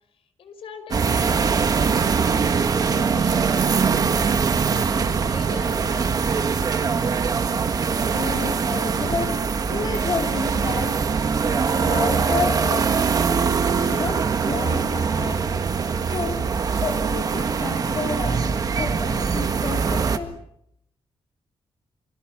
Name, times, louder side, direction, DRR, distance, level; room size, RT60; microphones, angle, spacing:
voice 1, 0.1-3.9 4.6-6.7, left 6 dB, 70° left, 9 dB, 5.4 m, -42 dB
sound 1, 0.9-20.2, right 5 dB, 40° right, 1.6 m, -22 dB
voice 2, 7.9-9.4 9.7-11.0 11.5-13.2 13.8-15.7 16.0-16.4 16.7-20.3, left 4 dB, 40° left, 2 dB, 3.2 m, -31 dB
28.0 x 25.0 x 6.1 m, 0.74 s
wide cardioid pair, 165°, 10 cm